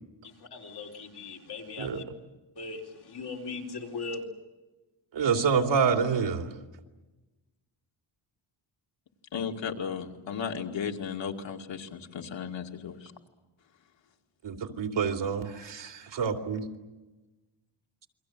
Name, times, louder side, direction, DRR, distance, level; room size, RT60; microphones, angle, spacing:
voice 1, 0.2-2.0 2.6-4.2, left 4 dB, 55° left, 1 dB, 4.2 m, -39 dB
voice 2, 5.1-6.4 14.4-16.6, right 6 dB, 70° right, 5 dB, 2.9 m, -27 dB
voice 3, 9.3-13.1, left 7 dB, 75° left, 3 dB, 2.5 m, -35 dB
29.0 x 23.0 x 7.9 m, 1.1 s
wide cardioid pair, 160°, 45 cm